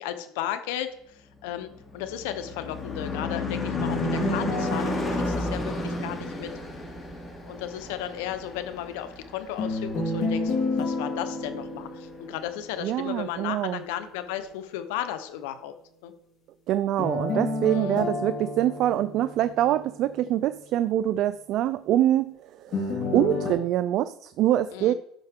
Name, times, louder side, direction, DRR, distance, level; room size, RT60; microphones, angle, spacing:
voice 1, 0.0-6.5 7.5-15.7 16.0-16.1 17.7-18.0 24.7-24.9, left 11 dB, 85° left, 10 dB, 0.9 m, -35 dB
Car passing by / Truck / Engine, 1.5-10.2, left 2 dB, 25° left, 2.8 m, -33 dB
sound 1, 3.7-6.8 9.6-12.8 17.0-20.1 22.7-23.5, left 2 dB, 50° left, 3.8 m, -30 dB
voice 2, 12.8-13.8 16.7-24.9, right 12 dB, 60° right, 13 dB, 0.3 m, -25 dB
13.0 x 5.6 x 3.7 m, 0.73 s
supercardioid pair, 110°, 0 cm